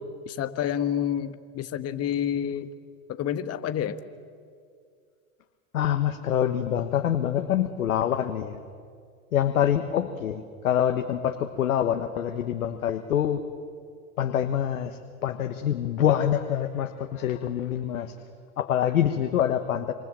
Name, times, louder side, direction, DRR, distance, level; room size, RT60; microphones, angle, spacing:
voice 1, 0.3-2.7 3.1-4.0, left 9 dB, 35° left, 11 dB, 1.6 m, -29 dB
voice 2, 5.7-8.6 9.3-13.4 14.2-18.1 18.6-19.9, left 10 dB, 90° left, 7 dB, 1.5 m, -26 dB
27.0 x 25.5 x 7.7 m, 2.2 s
hypercardioid pair, 105°, 41 cm